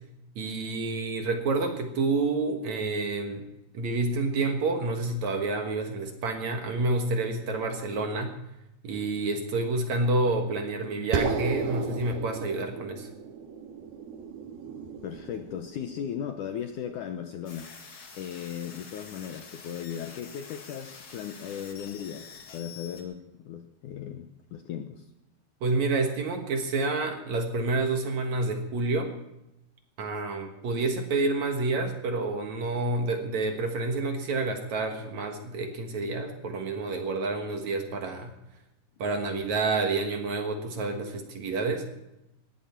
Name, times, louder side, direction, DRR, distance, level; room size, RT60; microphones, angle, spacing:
voice 1, 0.4-3.4 3.7-8.3 8.8-13.1 25.6-29.1 30.0-38.3 39.0-41.8, right 3 dB, 55° right, 4 dB, 2.4 m, -29 dB
sound 1, 11.1-15.9, right 5 dB, 80° right, 3.4 m, -33 dB
voice 2, 15.0-25.1, left 9 dB, 75° left, 7 dB, 1.9 m, -37 dB
sound 2, 17.5-23.0, left 5 dB, 40° left, 2.4 m, -47 dB
19.5 x 16.0 x 4.5 m, 0.90 s
omnidirectional pair, 4.6 m